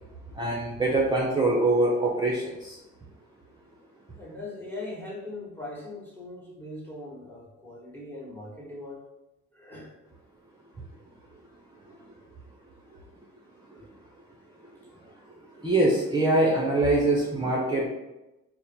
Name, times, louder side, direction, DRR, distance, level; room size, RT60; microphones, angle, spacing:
voice 1, 0.4-2.8 15.6-17.9, right 2 dB, 15° right, -4 dB, 0.8 m, -23 dB
voice 2, 4.2-9.0 9.5-9.9, left 2 dB, 5° left, -3 dB, 1.4 m, -40 dB
3.6 x 2.2 x 4.4 m, 0.97 s
cardioid pair, 90°, 30 cm